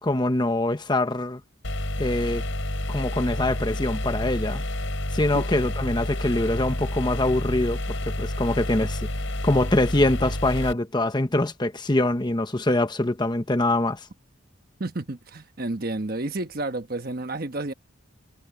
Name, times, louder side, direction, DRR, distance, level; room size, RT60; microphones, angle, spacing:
voice 1, 0.0-1.4 2.0-2.4 2.9-4.6 5.1-9.0 9.4-14.1, left 1 dB, 20° left, 0.9 m, -24 dB
sound 1, 1.6-10.7, left 1 dB, 70° left, 5.2 m, -29 dB
voice 2, 14.8-17.7, right 2 dB, 45° right, 1.2 m, -30 dB
head